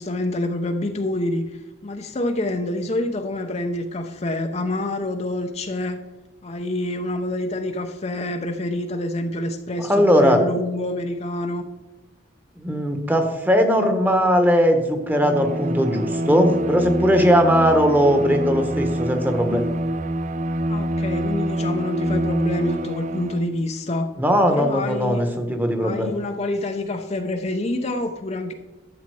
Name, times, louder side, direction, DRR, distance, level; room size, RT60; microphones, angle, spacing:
voice 1, 0.0-6.0 6.4-11.6 20.7-24.1 24.5-25.3 25.8-28.5, left 1 dB, 35° left, 5 dB, 0.7 m, -27 dB
voice 2, 9.9-10.4 12.6-19.7 24.2-26.1, equal, 10° right, 6 dB, 1.1 m, -19 dB
Bowed string instrument, 15.0-23.6, right 1 dB, 40° right, 0.4 m, -26 dB
12.5 x 7.1 x 4.8 m, 1.1 s
head